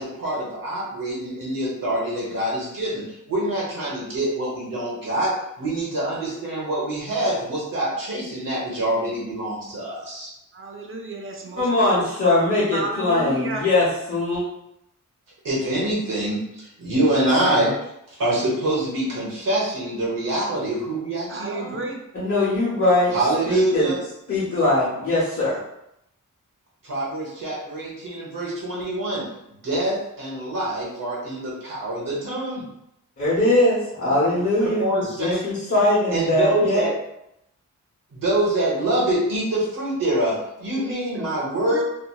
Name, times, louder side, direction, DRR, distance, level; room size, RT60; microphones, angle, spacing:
voice 1, 0.0-5.3 5.6-10.3 15.4-17.7 18.1-21.8 23.1-23.9 26.8-29.2 29.6-32.6 34.8-35.4 36.1-36.9 38.1-41.8, right 1 dB, 90° right, -6 dB, 1.0 m, -25 dB
voice 2, 10.5-11.7 12.0-13.7 21.3-22.1 34.0-34.4 40.8-41.3 41.7-41.8, right 2 dB, 40° right, 1 dB, 0.5 m, -33 dB
voice 3, 11.6-14.4 22.1-23.2 23.5-23.9 24.3-25.6 33.2-36.9, left 2 dB, 45° left, -9 dB, 0.9 m, -21 dB
2.8 x 2.6 x 2.3 m, 0.81 s
wide cardioid pair, 120°, 32 cm